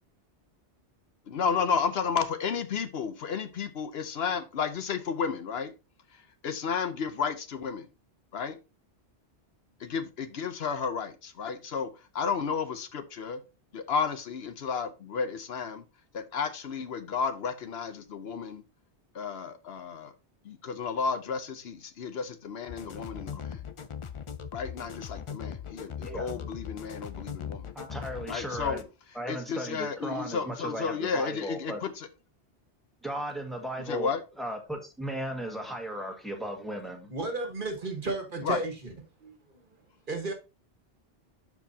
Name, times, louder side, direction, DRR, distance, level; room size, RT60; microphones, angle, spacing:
voice 1, 1.3-5.7 6.1-7.9 8.3-8.6 9.8-13.4 13.7-15.8 16.1-18.6 19.1-20.1 20.4-23.6 24.5-27.7 28.3-28.8 29.3-32.1 33.9-34.2 38.4-38.6, left 6 dB, 65° left, 0.9 m, -32 dB
sound 1, 22.7-28.8, left 7 dB, 45° left, 0.4 m, -40 dB
voice 2, 27.7-28.8 29.1-31.8 33.0-34.1 34.4-37.1, right 1 dB, ahead, 1.6 m, -36 dB
voice 3, 37.1-38.9 39.2-39.3 40.1-40.3, right 3 dB, 50° right, 1.6 m, -33 dB
11.5 x 4.6 x 2.7 m
omnidirectional pair, 1.1 m